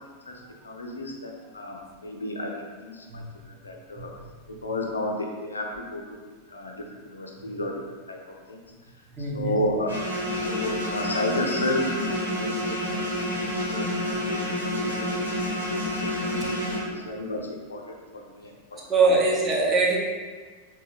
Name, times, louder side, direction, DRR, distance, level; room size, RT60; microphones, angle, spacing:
voice 1, 0.3-4.1 4.6-6.2 6.5-7.8 8.1-8.2 8.5-8.6 9.2-10.0 10.4-14.5 14.7-16.4 16.9-18.5, left 1 dB, 75° left, 1 dB, 0.6 m, -32 dB
voice 2, 9.2-9.5 18.9-20.0, right 3 dB, 20° right, -3 dB, 1.0 m, -22 dB
sound 1, 9.9-16.8, left 1 dB, 80° right, 1.4 m, -29 dB
4.5 x 3.0 x 3.4 m, 1.5 s
figure-of-eight pair, 90°, 0 cm